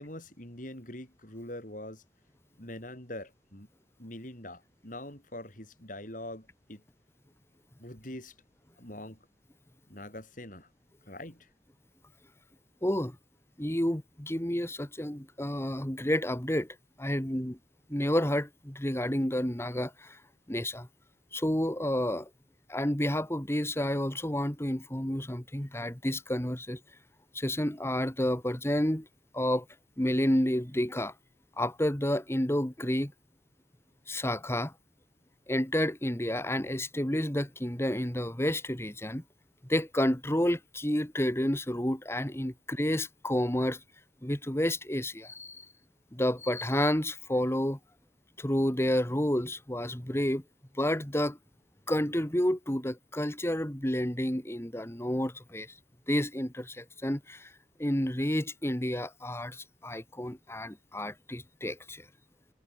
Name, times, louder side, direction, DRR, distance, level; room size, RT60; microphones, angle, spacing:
voice 1, 0.0-2.0 2.6-3.7 4.0-6.8 7.8-8.3 8.8-9.3 9.9-10.7 11.1-11.5, left 1 dB, 45° left, 6.7 m, -43 dB
voice 2, 12.8-13.2 13.6-16.7 17.0-17.6 17.9-20.2 20.5-20.9 21.3-22.3 22.7-26.8 27.3-29.1 29.3-29.7 30.0-31.1 31.6-33.1 34.1-34.7 35.5-39.2 39.7-43.8 44.2-45.7 46.1-47.8 48.4-50.4 50.8-51.4 51.9-55.7 56.1-57.5 57.8-62.0, left 1 dB, 15° left, 1.8 m, -30 dB
head